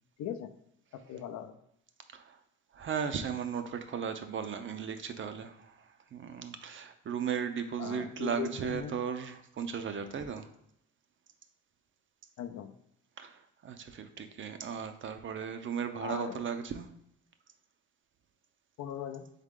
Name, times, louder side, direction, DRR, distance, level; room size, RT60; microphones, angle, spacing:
voice 1, 0.2-0.6 0.9-1.6 7.8-9.0 12.4-12.7 16.0-16.5 18.8-19.2, left 9 dB, 65° left, 8 dB, 0.5 m, -39 dB
voice 2, 2.7-5.7 6.1-10.5 13.2-16.9, right 7 dB, 40° right, 8 dB, 0.5 m, -36 dB
3.6 x 3.6 x 3.6 m, 0.77 s
cardioid pair, 90°, 30 cm